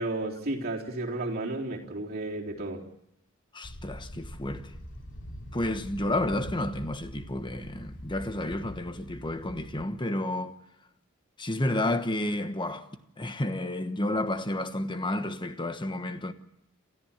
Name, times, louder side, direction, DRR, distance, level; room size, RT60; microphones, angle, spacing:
voice 1, 0.0-2.9, right 2 dB, 45° right, 3.8 m, -33 dB
voice 2, 3.5-4.7 5.5-10.5 11.4-12.8 13.2-16.3, left 1 dB, 20° left, 1.2 m, -31 dB
sound 1, 3.6-9.9, equal, 60° left, 3.2 m, -43 dB
28.0 x 14.0 x 7.3 m
head